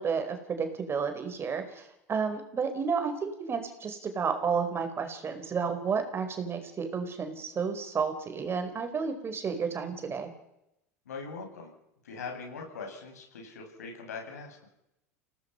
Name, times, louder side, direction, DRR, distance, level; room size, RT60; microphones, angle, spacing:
voice 1, 0.0-10.3, right 5 dB, 30° right, 7 dB, 4.7 m, -31 dB
voice 2, 11.1-11.7 12.0-14.7, left 4 dB, 85° left, 2 dB, 7.5 m, -41 dB
30.0 x 18.5 x 5.7 m, 0.84 s
hypercardioid pair, 90°, 9 cm